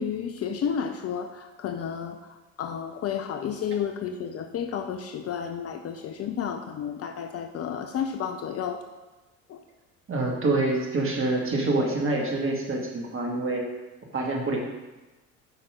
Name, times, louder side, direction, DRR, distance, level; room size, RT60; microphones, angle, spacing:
voice 1, 0.0-8.8 9.5-9.6, left 7 dB, 35° left, 6 dB, 0.7 m, -32 dB
voice 2, 10.1-13.6 14.1-14.6, right 2 dB, 30° right, 0 dB, 2.2 m, -26 dB
8.9 x 5.9 x 5.0 m, 1.1 s
figure-of-eight pair, 65°, 41 cm